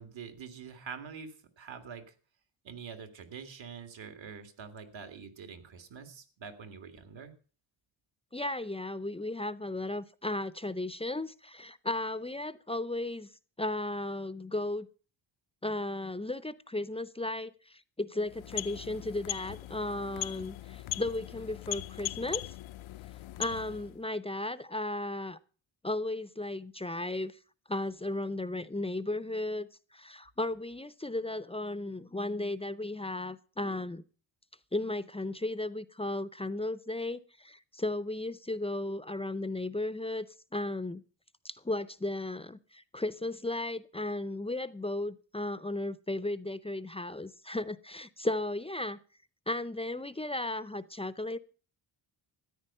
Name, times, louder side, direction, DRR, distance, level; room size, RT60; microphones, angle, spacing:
voice 1, 0.0-2.1 2.6-7.3, right 6 dB, 70° right, 2.0 m, -45 dB
voice 2, 8.3-13.3 13.6-14.9 15.6-22.5 23.4-25.4 25.8-27.4 27.7-34.0 34.7-40.3 40.5-41.0 41.4-49.0 49.5-51.4, left 2 dB, 15° left, 0.5 m, -35 dB
sound 1, 18.2-24.0, left 14 dB, 75° left, 0.6 m, -40 dB
14.0 x 9.7 x 5.5 m
cardioid pair, 100°, 48 cm